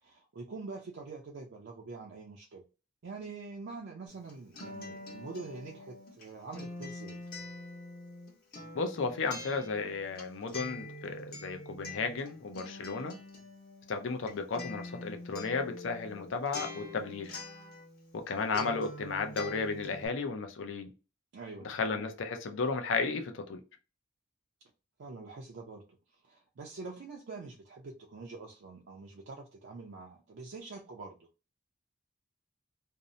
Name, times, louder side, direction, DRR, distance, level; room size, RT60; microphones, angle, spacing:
voice 1, 0.0-2.6 3.0-7.2 21.3-21.7 25.0-25.8 26.2-31.3, right 3 dB, 65° right, 0.4 m, -45 dB
Acoustic guitar, 4.1-18.3 18.5-20.1, left 2 dB, 50° left, 0.9 m, -45 dB
voice 2, 8.7-13.2 13.9-17.4 18.1-20.9 21.6-23.6, left 4 dB, 70° left, 0.5 m, -34 dB
2.6 x 2.0 x 2.6 m
head